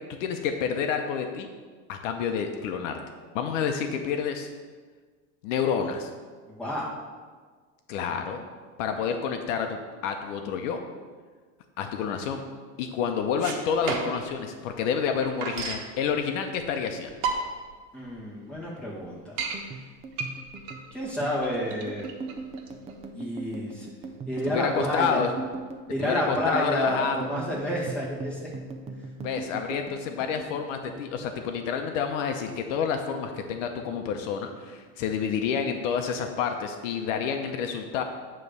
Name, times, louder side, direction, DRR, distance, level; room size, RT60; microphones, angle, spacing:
voice 1, 0.1-1.5 1.9-3.0 3.3-4.5 5.4-6.1 7.9-8.4 8.8-10.8 11.8-12.4 12.8-17.1 24.5-25.3 26.0-27.2 29.2-38.0, left 7 dB, 65° left, 5 dB, 0.8 m, -29 dB
sound 1, 13.2-14.3 14.7-14.8 15.0-15.9 16.6-16.7 17.1-17.7 18.2-18.3 18.5-18.6 19.0-19.6 20.1-23.0, right 4 dB, 65° right, 1.4 m, -32 dB
voice 2, 17.9-19.3 20.9-22.1 23.1-23.9 24.3-25.2 25.9-28.5, left 1 dB, 5° left, -6 dB, 1.8 m, -30 dB
sound 2, 19.4-32.0 32.2-33.3 33.5-33.9 34.2-34.9, right 4 dB, 15° right, 0.4 m, -39 dB
9.1 x 3.3 x 6.6 m, 1.5 s
supercardioid pair, 145°, 40 cm